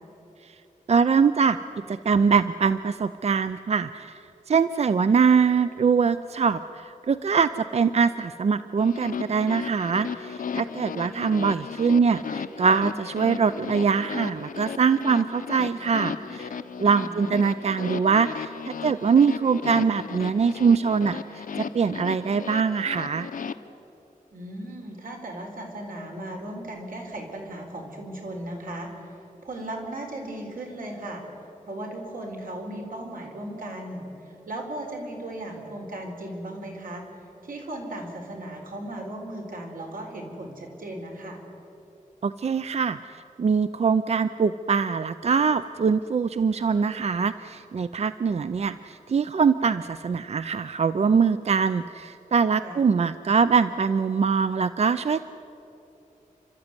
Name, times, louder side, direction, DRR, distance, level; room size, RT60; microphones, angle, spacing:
voice 1, 0.9-1.6 1.9-4.2 4.5-16.5 16.8-21.4 21.7-23.3 42.2-55.3, right 5 dB, 50° right, 13 dB, 0.5 m, -23 dB
sound 1, 8.8-23.5, left 6 dB, 80° left, 0.8 m, -35 dB
voice 2, 17.0-17.3 24.3-28.9 29.4-31.2 31.7-37.0 37.4-41.4 52.6-52.8, right 1 dB, 85° right, 1 dB, 4.2 m, -36 dB
30.0 x 13.0 x 9.7 m, 3.0 s
wide cardioid pair, 125°, 14 cm